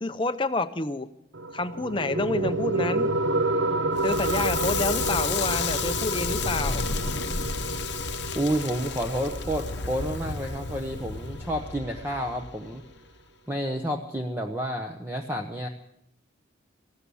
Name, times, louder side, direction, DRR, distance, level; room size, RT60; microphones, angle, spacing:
voice 1, 0.0-1.1 1.5-3.1 4.0-6.8, left 3 dB, 25° left, 9 dB, 0.6 m, -28 dB
sound 1, 1.3-12.4, right 2 dB, 70° right, 0.9 m, -30 dB
Crackle, 4.0-12.9, left 5 dB, 60° left, 0.8 m, -32 dB
voice 2, 8.3-12.8 13.5-15.7, equal, 10° right, 3 dB, 0.9 m, -30 dB
15.5 x 13.0 x 7.1 m, 0.77 s
head